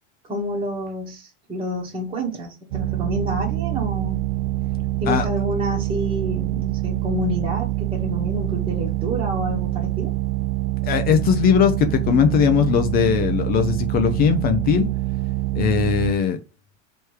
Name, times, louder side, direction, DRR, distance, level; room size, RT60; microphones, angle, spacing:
voice 1, 0.2-4.3 5.0-10.1, equal, 15° right, 1.0 m, -29 dB
sound 1, 2.7-16.1, right 17 dB, 60° right, 0.4 m, -25 dB
voice 2, 10.8-14.9 15.5-16.4, left 7 dB, 25° left, 0.4 m, -19 dB
3.3 x 3.1 x 4.6 m
supercardioid pair, 140°, 36 cm